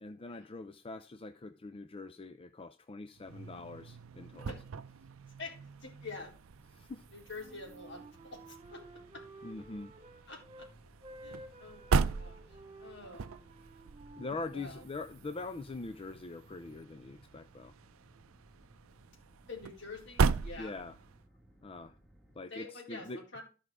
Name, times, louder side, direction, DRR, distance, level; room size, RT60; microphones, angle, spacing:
voice 1, 0.0-4.5 6.7-7.0 9.4-9.9 14.2-17.7 20.6-20.9 21.6-21.9 22.4-23.2, left 3 dB, 25° left, 0.5 m, -43 dB
sound 1, 3.2-21.2, right 5 dB, 80° right, 0.5 m, -38 dB
voice 2, 5.4-6.3 7.1-8.8 9.1-9.2 10.3-10.7 11.2-13.4 14.5-14.8 19.5-20.7 22.5-23.4, left 3 dB, 60° left, 4.1 m, -47 dB
sound 2, 6.5-22.4, right 1 dB, ahead, 2.0 m, -63 dB
Wind instrument woodwind instrument, 7.3-10.7 11.0-14.9, right 2 dB, 30° right, 1.7 m, -53 dB
13.0 x 5.4 x 4.8 m
head